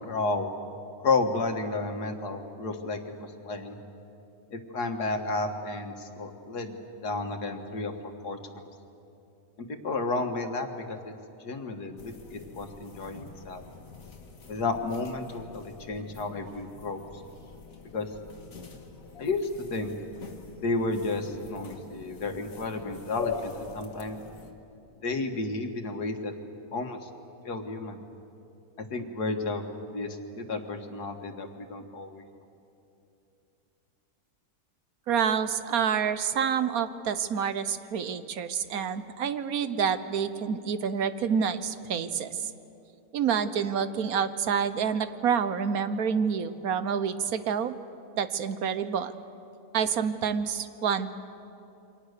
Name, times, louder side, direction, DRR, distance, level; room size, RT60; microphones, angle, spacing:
voice 1, 0.1-0.5 1.0-3.8 4.5-7.9 8.2-8.4 9.6-11.1 11.4-13.6 14.5-17.0 17.9-18.1 19.2-19.9 20.6-24.2 25.0-26.3 26.7-27.1 27.4-28.0 28.9-29.6 29.9-32.2, left 3 dB, 85° left, 5 dB, 2.2 m, -32 dB
sound 1, 12.0-24.5, left 6 dB, 60° left, 2.1 m, -43 dB
voice 2, 35.1-42.5 43.1-47.7 48.2-49.2 49.7-51.1, right 7 dB, 70° right, 12 dB, 1.3 m, -28 dB
28.0 x 24.0 x 6.7 m, 2.8 s
omnidirectional pair, 1.6 m